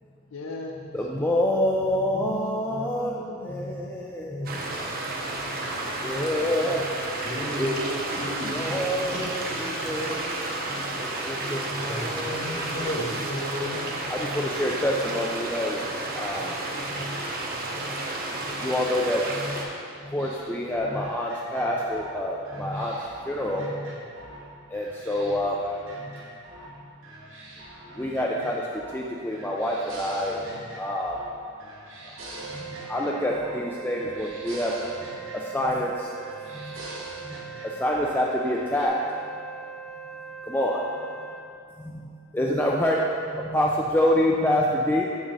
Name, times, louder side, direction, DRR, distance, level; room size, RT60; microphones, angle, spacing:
voice 1, 0.3-0.9 2.1-5.3 8.1-10.7 13.4-14.5, left 2 dB, 65° left, 1 dB, 0.6 m, -42 dB
voice 2, 0.9-4.9 5.3-5.6 6.0-6.9 7.6-10.4 10.7-12.9 14.1-15.8 16.2-16.5 16.9-17.2 17.9-18.1 18.4-19.7 20.0-24.0 24.7-25.6 26.0-26.2 26.8-26.9 27.9-31.2 32.0-32.2 32.5-34.8 35.3-36.1 36.5-36.8 37.2-39.0 40.5-40.9 41.8-45.0, left 1 dB, 10° left, -3 dB, 0.4 m, -27 dB
sound 1, 4.4-19.6, right 2 dB, 45° right, 0.9 m, -32 dB
voice 3, 7.2-7.8 8.1-8.8 9.1-9.3 11.9-13.9, left 1 dB, 35° left, -4 dB, 1.2 m, -34 dB
sound 2, 20.2-24.5 24.7-26.7 27.0-29.0 29.3-31.3 31.6-33.6 33.9-35.9 36.2-38.1 38.4-38.9, right 1 dB, 60° right, 1.3 m, -44 dB
Wind instrument woodwind instrument, 32.3-41.5, right 7 dB, 85° right, 0.6 m, -41 dB
7.1 x 6.3 x 4.0 m, 2.5 s
head